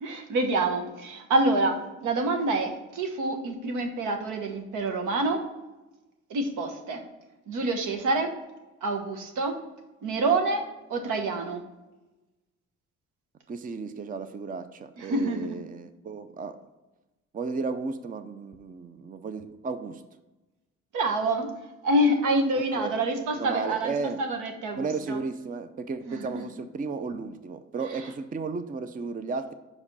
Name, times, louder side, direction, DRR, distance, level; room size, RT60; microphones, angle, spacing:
voice 1, 0.0-5.4 6.3-7.0 7.5-8.3 8.8-9.6 10.0-10.6 10.9-11.6 15.0-15.6 20.9-21.5 21.8-25.2 26.1-26.4, right 2 dB, 85° right, 4 dB, 1.1 m, -27 dB
voice 2, 13.5-16.5 17.3-20.0 22.8-22.9 23.4-24.2 24.7-29.5, right 4 dB, 30° right, 10 dB, 0.5 m, -34 dB
5.3 x 5.0 x 5.4 m, 1.1 s
cardioid pair, 90°, 30 cm